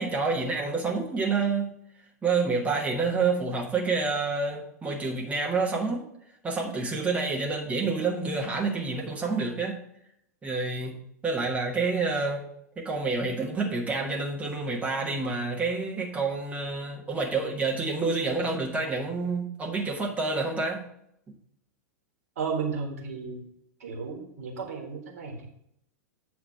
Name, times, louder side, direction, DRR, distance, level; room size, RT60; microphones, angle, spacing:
voice 1, 0.0-1.7 2.2-6.1 6.4-9.8 10.4-12.4 12.8-20.8, right 4 dB, 15° right, 1.3 m, -28 dB
voice 2, 22.3-23.4 23.8-25.5, right 5 dB, 60° right, 1.6 m, -33 dB
7.9 x 3.2 x 6.3 m
figure-of-eight pair, 95°, 9 cm